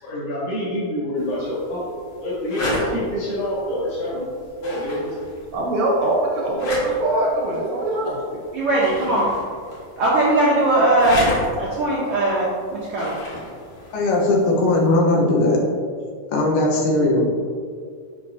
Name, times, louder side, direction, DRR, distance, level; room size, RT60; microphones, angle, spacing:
voice 1, 0.0-1.9 2.2-4.3 4.6-5.1, equal, 70° left, -12 dB, 2.9 m, -26 dB
sound 1, 1.2-15.0, left 1 dB, 55° left, 1.6 m, -34 dB
voice 2, 5.5-8.2, right 1 dB, 70° right, -3 dB, 1.6 m, -22 dB
voice 3, 8.5-9.3 10.0-11.2 11.6-13.2, right 2 dB, 85° right, -7 dB, 1.2 m, -19 dB
voice 4, 13.9-15.6 16.3-17.2, left 2 dB, 90° left, -1 dB, 2.5 m, -18 dB
6.5 x 5.5 x 2.6 m, 2.1 s
omnidirectional pair, 3.7 m